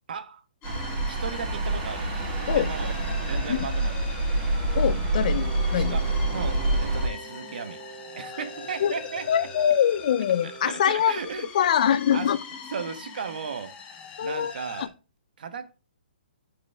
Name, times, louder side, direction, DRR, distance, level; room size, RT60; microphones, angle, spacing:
voice 1, 0.1-0.4 1.1-2.1 2.5-3.0 3.3-4.2 5.8-6.1 6.3-7.8 8.2-9.5 10.4-11.5 12.1-12.3 12.7-13.8 14.2-14.9 15.4-15.7, right 6 dB, 65° right, 1.1 m, -35 dB
sound 1, 0.6-14.9, left 6 dB, 20° left, 1.1 m, -43 dB
sound 2, 0.6-7.1, right 2 dB, 30° right, 3.2 m, -27 dB
voice 2, 4.7-6.0 8.8-8.9 9.3-11.2 11.5-12.4 14.2-14.5 14.8-14.9, left 9 dB, 50° left, 0.4 m, -23 dB
Wind instrument woodwind instrument, 5.3-11.0, right 5 dB, 10° right, 1.7 m, -44 dB
10.0 x 5.1 x 3.5 m
hypercardioid pair, 155°, 5 cm